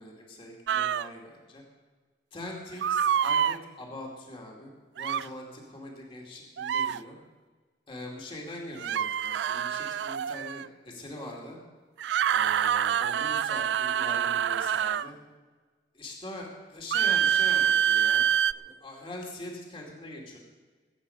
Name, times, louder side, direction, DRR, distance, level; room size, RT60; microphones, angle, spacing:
voice 1, 0.0-1.6 2.3-7.2 7.9-11.6 12.3-15.1 15.9-18.3 18.5-20.4, left 1 dB, 30° left, -1 dB, 2.6 m, -42 dB
sound 1, 0.7-1.1 2.8-3.6 5.0-5.3 6.6-7.0 8.8-10.7 12.0-15.1 16.9-18.5, right 9 dB, 80° right, 0.3 m, -26 dB
22.0 x 8.9 x 5.6 m, 1.4 s
head